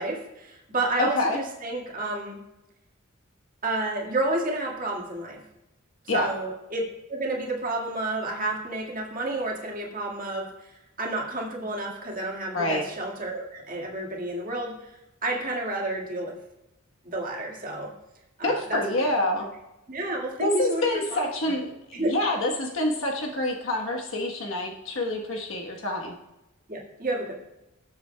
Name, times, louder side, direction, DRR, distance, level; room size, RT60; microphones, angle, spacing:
voice 1, 0.0-2.4 3.6-5.4 6.1-6.8 7.1-16.3 17.0-17.9 18.4-18.8 19.4-19.5 19.9-20.8 21.1-21.2 21.9-22.1 26.7-27.3, right 2 dB, 40° right, -2 dB, 1.8 m, -30 dB
voice 2, 1.0-1.4 6.1-6.3 12.5-12.8 18.4-19.5 20.4-26.1, left 1 dB, 75° left, 0 dB, 1.2 m, -27 dB
16.5 x 7.4 x 2.2 m, 0.94 s
head